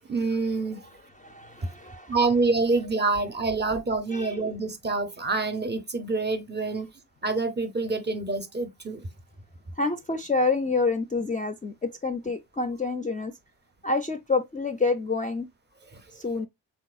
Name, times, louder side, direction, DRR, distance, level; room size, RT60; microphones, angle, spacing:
voice 1, 0.1-0.8 2.1-6.9 7.2-9.1 15.9-16.0, right 3 dB, 25° right, 0.6 m, -27 dB
voice 2, 1.2-2.2 4.1-4.4 9.8-11.7 12.0-13.3 13.8-15.5 16.1-16.5, left 3 dB, 20° left, 0.3 m, -28 dB
3.6 x 2.7 x 2.3 m
cardioid pair, 85°, 42 cm